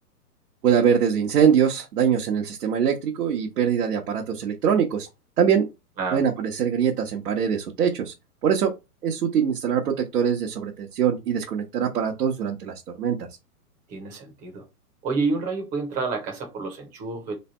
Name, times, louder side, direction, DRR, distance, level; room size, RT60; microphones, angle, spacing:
voice 1, 0.6-5.1 5.4-5.7 6.1-8.1 8.4-8.7 9.0-13.2, right 7 dB, 70° right, 1.2 m, -23 dB
voice 2, 13.9-14.6 15.0-17.3, right 4 dB, 15° right, 1.0 m, -29 dB
3.4 x 3.3 x 4.3 m
hypercardioid pair, 155°, 47 cm